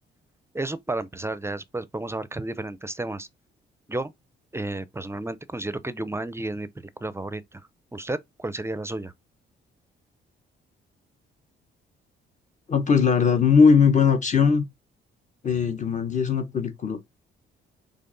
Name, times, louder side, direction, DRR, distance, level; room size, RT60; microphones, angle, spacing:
voice 1, 0.5-3.3 3.9-4.1 4.5-6.7 7.0-7.6 7.9-9.1, right 2 dB, 15° right, 0.5 m, -32 dB
voice 2, 12.7-14.6 15.4-17.0, left 6 dB, 35° left, 1.0 m, -19 dB
5.5 x 3.6 x 2.6 m
cardioid pair, 90°, 20 cm